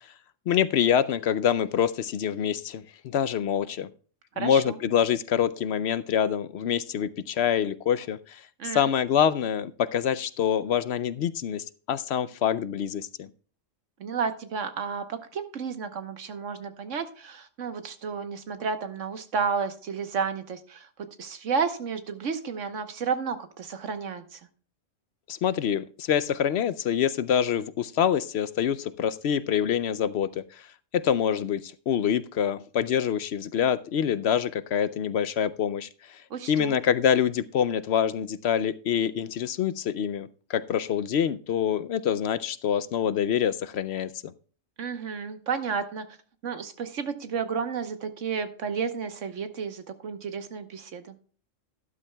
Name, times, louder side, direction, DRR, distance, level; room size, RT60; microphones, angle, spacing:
voice 1, 0.5-3.9 4.4-13.3 25.3-30.6 30.9-36.2 36.5-44.1, left 8 dB, 65° left, 16 dB, 0.8 m, -26 dB
voice 2, 4.4-4.8 8.6-8.9 14.0-20.9 21.2-24.4 36.3-36.8 44.8-46.0 46.4-51.1, right 6 dB, 75° right, 9 dB, 1.3 m, -32 dB
12.0 x 12.0 x 2.2 m, 0.40 s
omnidirectional pair, 1.3 m